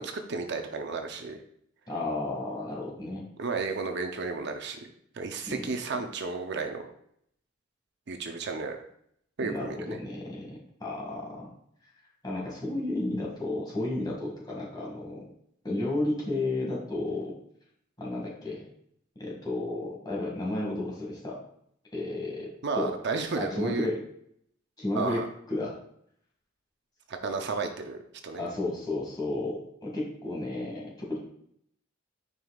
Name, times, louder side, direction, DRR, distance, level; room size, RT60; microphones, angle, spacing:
voice 1, 0.0-1.4 3.4-4.9 5.1-6.9 8.1-8.8 9.4-10.0 22.6-23.9 25.0-25.3 27.1-28.4, right 4 dB, 60° right, 5 dB, 0.7 m, -33 dB
voice 2, 1.9-3.2 5.5-5.7 9.4-11.5 12.2-15.2 15.6-17.4 18.0-18.6 19.2-21.4 21.9-22.5 22.7-22.9 23.3-24.0 24.8-25.8 28.4-31.2, left 2 dB, 20° left, -3 dB, 2.0 m, -32 dB
9.3 x 5.2 x 2.4 m, 0.70 s
head